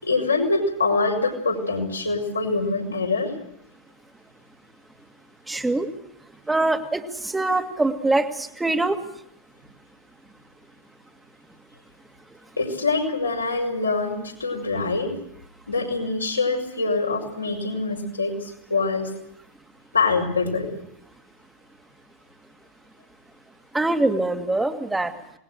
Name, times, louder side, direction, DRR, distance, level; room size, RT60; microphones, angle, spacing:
voice 1, 0.0-3.3 12.6-15.1 15.7-19.1 19.9-20.7, left 3 dB, 80° left, 1 dB, 5.8 m, -24 dB
voice 2, 5.5-5.9 6.5-9.0 23.7-25.1, right 2 dB, 5° right, 8 dB, 2.0 m, -23 dB
26.5 x 20.5 x 6.5 m, 0.75 s
figure-of-eight pair, 90°, 0 cm